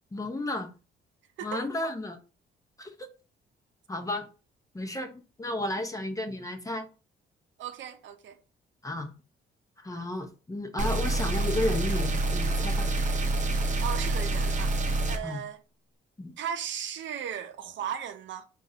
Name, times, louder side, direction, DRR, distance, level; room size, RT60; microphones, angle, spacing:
voice 1, 0.1-0.7 1.4-2.2 2.8-2.9 3.9-4.3 4.7-6.9 8.8-9.1 9.8-12.9 15.2-15.4 16.2-16.3, left 1 dB, 15° left, 0.8 m, -33 dB
voice 2, 7.6-8.4 13.8-14.7 15.1-15.6 16.4-18.4, right 9 dB, 70° right, 0.6 m, -36 dB
sound 1, 10.8-15.2, right 2 dB, 40° right, 0.8 m, -27 dB
3.9 x 2.5 x 3.8 m
cardioid pair, 90°, 20 cm